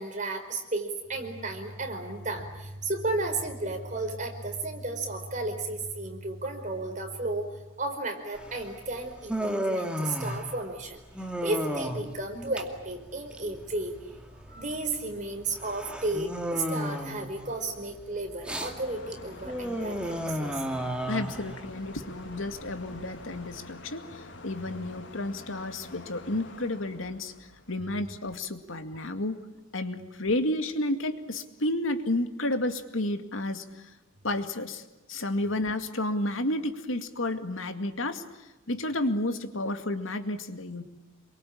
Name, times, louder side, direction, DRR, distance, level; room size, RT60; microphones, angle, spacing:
voice 1, 0.0-14.0 14.3-20.6, right 2 dB, 40° right, 4 dB, 4.8 m, -33 dB
Human voice, 8.3-23.6, equal, 5° right, 2.4 m, -34 dB
sound 1, 18.5-28.7, left 2 dB, 65° left, 2.0 m, -47 dB
voice 2, 21.1-29.4 29.7-33.8 34.2-34.8 35.1-40.8, left 1 dB, 80° left, 8 dB, 2.2 m, -31 dB
27.5 x 23.5 x 8.7 m, 1.1 s
head